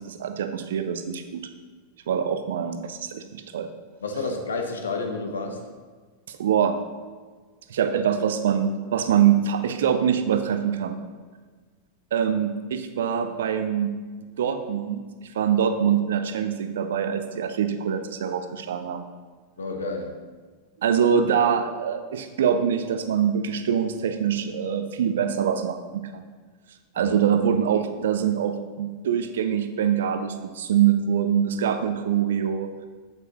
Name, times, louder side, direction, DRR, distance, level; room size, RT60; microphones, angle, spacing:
voice 1, 0.0-1.4 2.1-3.7 6.3-6.8 7.7-11.0 12.1-13.9 14.4-15.1 15.3-19.0 20.8-26.2 26.9-32.7, right 8 dB, 60° right, 9 dB, 0.6 m, -24 dB
voice 2, 4.0-5.6 19.6-20.2 27.0-27.2, left 3 dB, 70° left, 4 dB, 1.0 m, -30 dB
8.3 x 8.0 x 2.9 m, 1.5 s
figure-of-eight pair, 90°, 0 cm